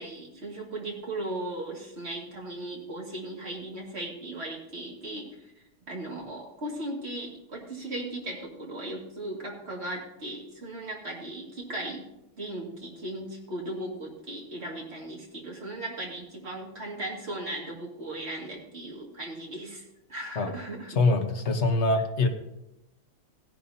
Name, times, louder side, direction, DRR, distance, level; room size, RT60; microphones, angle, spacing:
voice 1, 0.0-5.3 5.9-12.1 12.4-19.8 20.1-20.9, right 1 dB, 30° right, -1 dB, 2.4 m, -37 dB
voice 2, 20.9-22.3, left 3 dB, 40° left, 4 dB, 1.1 m, -24 dB
16.5 x 11.0 x 2.8 m, 0.89 s
omnidirectional pair, 2.4 m